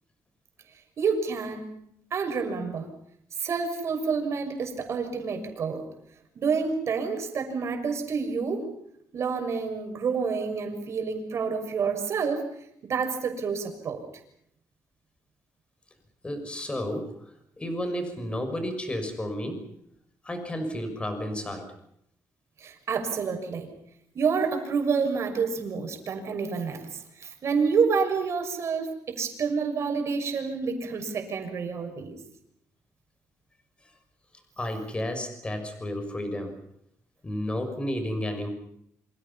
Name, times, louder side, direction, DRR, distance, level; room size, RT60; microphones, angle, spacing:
voice 1, 1.0-1.6 2.1-2.9 3.4-5.8 6.3-8.7 9.1-12.4 12.8-14.0 22.6-23.7 24.1-32.2, right 5 dB, 50° right, 5 dB, 6.4 m, -28 dB
voice 2, 16.2-17.1 17.6-19.7 20.2-21.7 34.6-36.6 37.2-38.5, left 1 dB, 20° left, 7 dB, 6.5 m, -32 dB
28.0 x 26.5 x 5.7 m, 0.73 s
cardioid pair, 115°, 6 cm